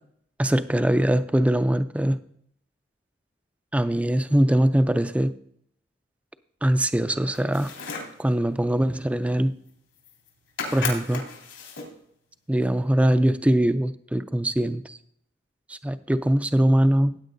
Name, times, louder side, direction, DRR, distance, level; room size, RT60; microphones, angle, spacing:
voice 1, 0.4-2.2 3.7-5.3 6.6-7.7 8.2-9.5 10.7-11.2 12.5-15.0 15.7-17.2, right 1 dB, 5° right, 12 dB, 0.3 m, -22 dB
sound 1, 7.3-8.2 9.7-9.8 10.0-10.3 10.6-12.0, left 4 dB, 80° left, 3.1 m, -34 dB
15.5 x 9.0 x 2.6 m, 0.68 s
head